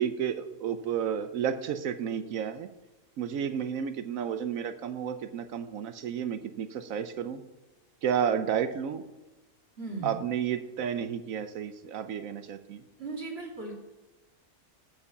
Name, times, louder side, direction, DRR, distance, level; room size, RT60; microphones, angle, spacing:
voice 1, 0.0-2.7 3.2-7.4 8.0-9.0 10.0-12.8, right 8 dB, 70° right, 10 dB, 1.0 m, -31 dB
voice 2, 9.8-10.2 13.0-13.8, right 3 dB, 40° right, -1 dB, 2.6 m, -37 dB
7.8 x 7.0 x 7.2 m, 1.1 s
omnidirectional pair, 1.6 m